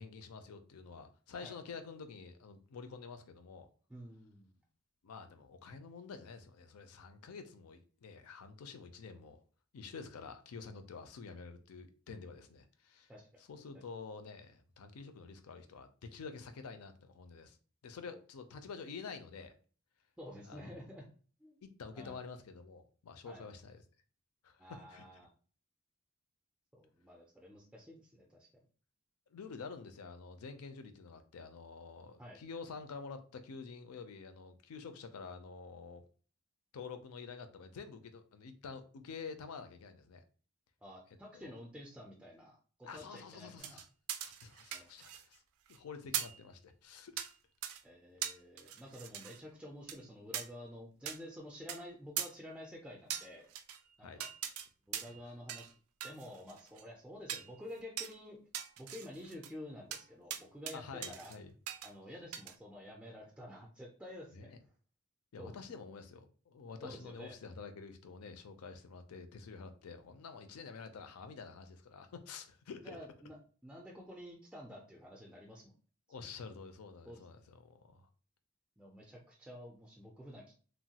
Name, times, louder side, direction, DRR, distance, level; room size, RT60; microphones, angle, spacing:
voice 1, 0.0-3.7 5.0-9.4 9.7-13.1 13.4-17.6 17.8-19.5 20.5-20.7 21.6-23.8 24.4-25.1 29.3-36.0 36.7-40.2 41.3-41.5 42.8-43.8 44.3-45.4 45.7-47.2 54.0-54.2 60.7-61.5 64.3-64.6 65.3-73.0 76.1-78.1, left 5 dB, 85° left, 0.4 m, -48 dB
voice 2, 3.9-4.5 13.1-13.3 18.1-18.2 20.2-21.0 21.4-21.6 21.9-22.2 23.2-23.5 24.6-25.3 26.7-28.5 32.2-32.4 40.8-43.8 44.7-44.9 47.8-53.5 54.0-54.3 54.9-55.7 56.0-58.4 58.8-61.3 61.8-64.5 65.4-65.6 66.8-67.4 72.8-73.4 73.6-75.7 76.2-76.3 77.1-77.2 78.8-80.5, left 1 dB, 5° right, 0.3 m, -50 dB
sound 1, 43.6-45.3 45.7-45.8 46.1-46.4 47.2-47.3 47.6-47.8 48.2-49.4 49.9-50.0 50.3-50.5 51.1-51.2 51.7-51.8 52.2-52.3 53.1-53.8 54.2-54.7 54.9-55.2 55.5-55.7 56.0-56.8 57.3-57.5 58.0-58.1 58.5-59.5 59.9-60.0 60.3-60.7 61.0-61.4 61.7-61.9 62.3-62.5, right 10 dB, 80° right, 0.3 m, -41 dB
3.0 x 2.2 x 2.8 m
head